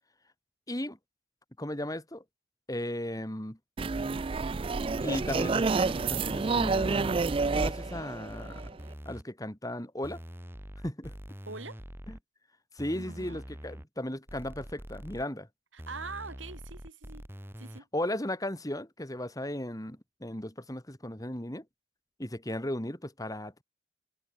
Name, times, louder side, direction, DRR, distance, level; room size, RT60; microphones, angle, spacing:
voice 1, 0.7-1.0 1.6-2.2 2.7-3.6 5.0-8.6 9.0-10.2 10.8-11.1 12.1-12.2 12.7-15.5 17.9-21.6 22.2-23.6, left 1 dB, 20° left, 2.7 m, -36 dB
sound 1, 3.8-8.9, right 4 dB, 25° right, 0.3 m, -29 dB
sound 2, 5.8-6.2 7.0-8.0 8.3-9.2 10.0-12.2 12.8-13.8 14.3-15.2 15.8-17.8, equal, 10° right, 2.8 m, -44 dB
voice 2, 11.5-11.8 12.9-13.4 15.7-17.2 17.6-17.9, right 4 dB, 75° right, 3.5 m, -43 dB
head